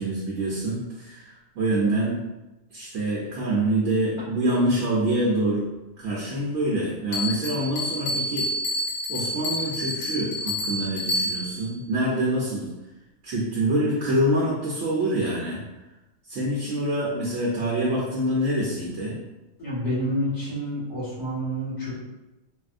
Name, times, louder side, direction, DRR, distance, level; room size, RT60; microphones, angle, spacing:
voice 1, 0.0-2.2 2.7-5.7 6.0-8.5 9.1-12.7 13.2-15.6 16.2-19.2, right 1 dB, 70° right, -5 dB, 1.0 m, -25 dB
Bell, 7.1-11.6, left 1 dB, 80° left, 1.1 m, -29 dB
voice 2, 19.6-21.9, equal, 60° left, -15 dB, 1.9 m, -28 dB
3.4 x 2.5 x 2.5 m, 1.0 s
omnidirectional pair, 1.4 m